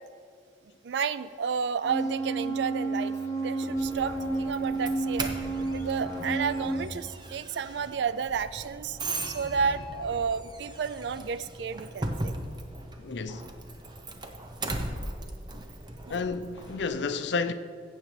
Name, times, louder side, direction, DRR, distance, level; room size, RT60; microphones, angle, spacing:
voice 1, 0.8-3.1 3.4-5.3 5.7-9.0 9.2-12.4 16.1-16.2, right 6 dB, 70° right, 0.4 m, -31 dB
sound 1, 1.8-6.8, right 3 dB, 20° left, 1.5 m, -31 dB
Doorbell, 3.7-16.9, right 2 dB, 25° right, 0.7 m, -38 dB
voice 2, 13.0-13.5 16.1-17.5, left 4 dB, 75° left, 0.5 m, -31 dB
15.0 x 8.0 x 3.3 m
head